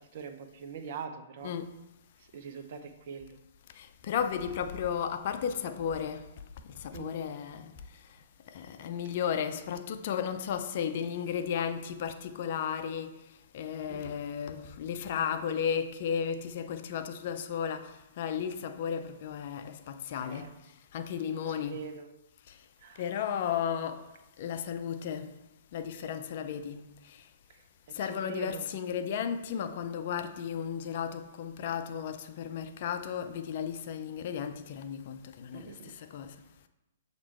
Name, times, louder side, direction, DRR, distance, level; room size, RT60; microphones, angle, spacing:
voice 1, 0.0-1.5 2.3-3.4 6.9-7.2 13.9-14.1 20.2-20.5 21.5-22.1 22.8-23.1 28.0-28.6 35.5-35.9, right 6 dB, 50° right, 0.6 m, -43 dB
voice 2, 3.7-6.3 6.7-7.7 8.5-13.2 13.5-20.5 20.9-21.8 22.5-22.6 23.0-24.0 24.4-25.3 25.7-27.2 27.9-36.3, left 8 dB, 50° left, 0.5 m, -34 dB
7.3 x 2.9 x 4.4 m
figure-of-eight pair, 120°, 0 cm